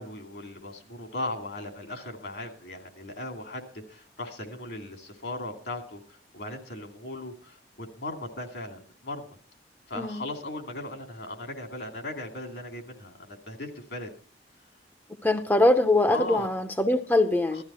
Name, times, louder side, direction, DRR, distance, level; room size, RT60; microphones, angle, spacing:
voice 1, 0.0-9.4 9.9-14.1 16.1-16.5 17.5-17.6, left 2 dB, 70° left, 2.5 m, -38 dB
voice 2, 10.0-10.3 15.2-17.6, left 2 dB, 10° left, 0.7 m, -23 dB
15.5 x 12.5 x 4.3 m
head